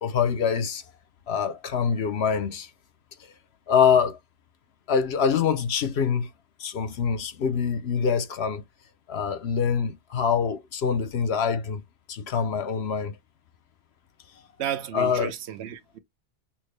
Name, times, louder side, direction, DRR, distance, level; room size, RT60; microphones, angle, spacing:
voice 1, 0.0-0.8 1.3-2.7 3.7-4.2 4.9-6.3 6.6-8.6 9.1-11.8 12.1-13.1 14.9-15.3, left 6 dB, 70° left, 0.9 m, -25 dB
voice 2, 14.6-16.0, right 10 dB, 80° right, 0.9 m, -33 dB
5.9 x 2.1 x 3.2 m
omnidirectional pair, 1.1 m